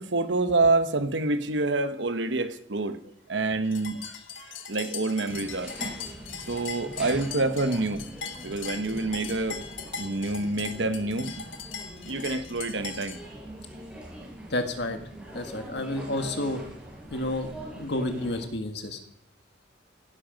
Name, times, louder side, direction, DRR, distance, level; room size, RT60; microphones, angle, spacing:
voice 1, 0.0-5.8 6.5-8.0 8.4-9.6 10.0-11.4 12.0-13.2, right 2 dB, 65° right, 10 dB, 1.1 m, -27 dB
sound 1, 3.7-13.2, left 6 dB, 90° left, 1.6 m, -40 dB
sound 2, 5.3-18.4, right 1 dB, 5° right, 5.7 m, -43 dB
voice 2, 14.5-15.0 15.3-16.7 17.1-19.0, left 1 dB, 60° left, 6 dB, 1.9 m, -30 dB
16.5 x 13.0 x 5.2 m, 0.72 s
head